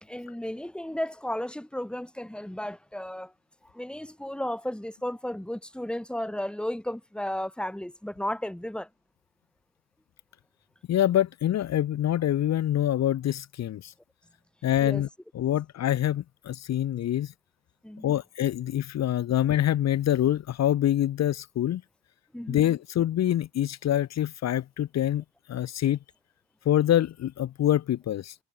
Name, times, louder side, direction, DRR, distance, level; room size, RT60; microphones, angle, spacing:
voice 1, 0.0-3.3 3.6-8.9 14.8-15.0 17.8-18.2 22.3-22.6, left 1 dB, 5° left, 2.2 m, -34 dB
voice 2, 10.9-13.9 14.6-15.1 15.3-17.3 18.0-21.8 22.5-26.0 26.6-28.3, left 12 dB, 60° left, 1.0 m, -25 dB
cardioid pair, 90°, 30 cm